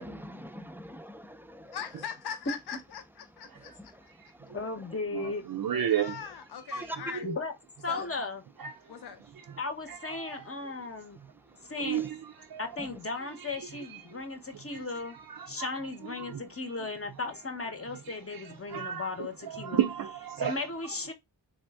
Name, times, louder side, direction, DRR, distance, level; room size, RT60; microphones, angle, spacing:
voice 1, 0.0-1.8 3.8-4.6 6.7-7.0 11.5-12.1 12.8-12.9 14.4-14.5, equal, 5° right, 0.5 m, -44 dB
voice 2, 1.7-3.5 5.9-7.3 7.9-8.1 8.9-9.2, left 7 dB, 65° left, 0.6 m, -40 dB
voice 3, 4.5-5.5 7.2-7.5 7.8-8.4 9.6-11.2 11.7-12.0 12.6-15.2 15.5-19.8 20.4-21.1, left 3 dB, 35° left, 0.8 m, -36 dB
voice 4, 5.1-6.2 7.2-7.4 8.6-8.7 9.9-10.4 11.8-12.1 12.5-12.6 14.1-14.2 14.7-14.8 15.1-15.7 16.2-16.4 18.3-19.1 19.5-20.6, right 10 dB, 60° right, 0.5 m, -32 dB
3.4 x 2.6 x 3.4 m
wide cardioid pair, 60°, 42 cm